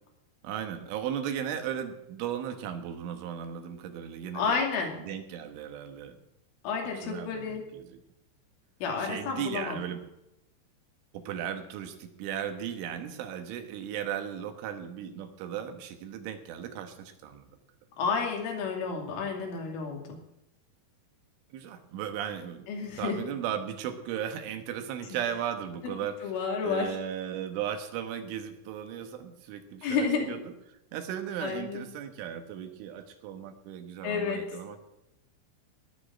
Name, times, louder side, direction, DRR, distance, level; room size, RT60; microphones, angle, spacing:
voice 1, 0.4-4.5 5.0-6.2 6.8-8.0 9.0-10.0 11.1-17.5 21.5-22.7 23.0-26.3 26.6-30.5 30.9-34.8, right 9 dB, 85° right, 7 dB, 3.8 m, -36 dB
voice 2, 4.3-5.0 6.6-7.7 8.8-9.8 18.0-20.2 22.7-23.2 25.1-25.2 25.8-25.9 26.2-27.0 29.8-30.3 31.4-31.9 34.0-34.5, left 5 dB, 85° left, 1 dB, 5.1 m, -31 dB
18.5 x 6.4 x 9.0 m, 0.87 s
omnidirectional pair, 5.5 m